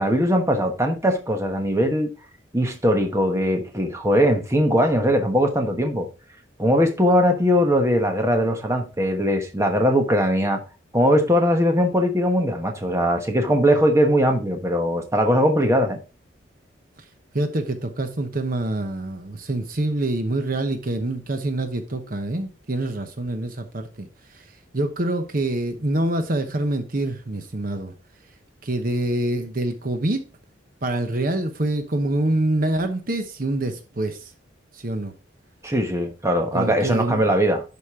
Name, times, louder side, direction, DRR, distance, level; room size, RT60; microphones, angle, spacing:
voice 1, 0.0-2.1 2.5-6.1 6.6-10.6 10.9-16.0 35.6-37.6, equal, 15° right, 1.2 m, -20 dB
voice 2, 17.3-27.9 28.6-30.2 30.8-34.3 34.7-35.1 36.5-37.4, right 1 dB, 45° right, 0.9 m, -26 dB
11.5 x 5.2 x 3.7 m
head